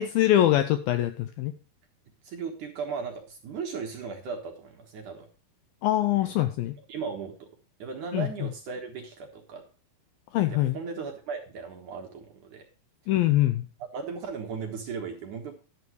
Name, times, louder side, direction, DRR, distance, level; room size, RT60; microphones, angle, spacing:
voice 1, 0.0-1.5 5.8-6.8 8.1-8.3 10.3-10.8 13.1-13.7, left 13 dB, 85° left, 10 dB, 2.1 m, -23 dB
voice 2, 2.2-5.3 6.1-6.3 6.9-7.5 7.8-9.6 10.5-12.6 13.9-15.5, right 5 dB, 60° right, 2 dB, 2.4 m, -37 dB
12.0 x 11.5 x 3.0 m, 0.35 s
omnidirectional pair, 4.9 m